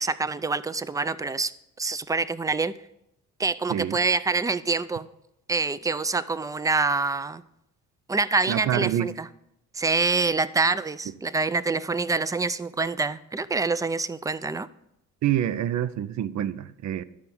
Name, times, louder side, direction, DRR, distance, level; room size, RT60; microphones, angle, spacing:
voice 1, 0.0-1.5 1.8-2.7 3.4-5.1 5.5-7.4 8.1-9.3 9.7-14.7, right 3 dB, 10° right, 0.4 m, -26 dB
voice 2, 8.5-9.1 15.2-17.0, right 11 dB, 65° right, 0.6 m, -26 dB
11.5 x 4.8 x 7.0 m
cardioid pair, 90°, 30 cm